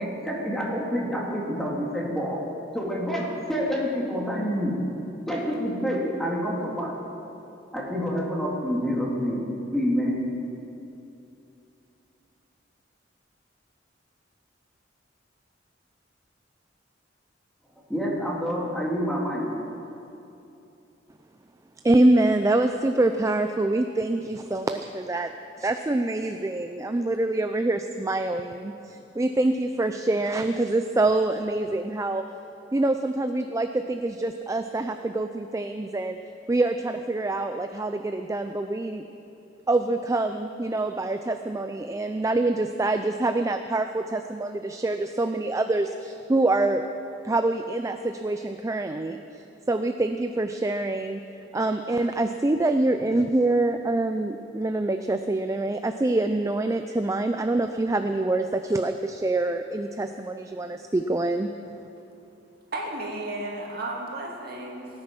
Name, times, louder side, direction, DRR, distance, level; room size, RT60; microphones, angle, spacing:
voice 1, 0.0-2.4 2.7-4.8 5.3-6.9 7.7-10.3 17.9-19.5, equal, ahead, -4 dB, 2.3 m, -27 dB
voice 2, 21.8-25.3 25.6-32.2 32.7-36.2 36.5-39.0 39.7-46.8 47.2-51.2 51.5-61.5, right 2 dB, 15° right, 7 dB, 0.4 m, -25 dB
voice 3, 62.7-64.9, right 2 dB, 55° right, -1 dB, 2.2 m, -33 dB
17.5 x 9.7 x 5.9 m, 2.8 s
head